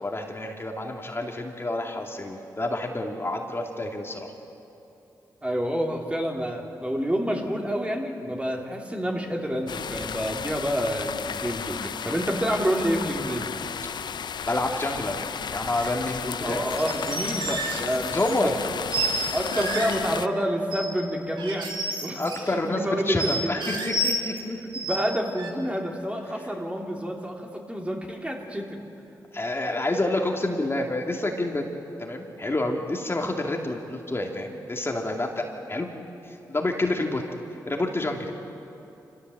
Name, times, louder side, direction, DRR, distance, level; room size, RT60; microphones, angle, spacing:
voice 1, 0.0-4.3 14.4-15.2 15.5-16.6 18.1-18.6 22.2-24.8 29.3-31.7 32.0-35.9 36.2-37.2 37.7-38.3, left 2 dB, 30° left, 1 dB, 2.4 m, -28 dB
voice 2, 5.4-13.5 16.4-18.5 19.3-21.7 22.0-22.2 22.5-23.6 24.8-28.8, equal, 15° right, 0 dB, 3.2 m, -28 dB
sound 1, 9.7-20.3, left 7 dB, 65° left, 0.5 m, -33 dB
sound 2, 15.7-15.9 16.7-18.4 18.9-19.2 19.5-20.0 20.7-21.0 21.4-22.4 23.2-24.4 24.7-25.0 25.4-25.5, right 1 dB, 75° right, 2.5 m, -30 dB
25.0 x 16.0 x 7.9 m, 2.8 s
supercardioid pair, 45°, 8 cm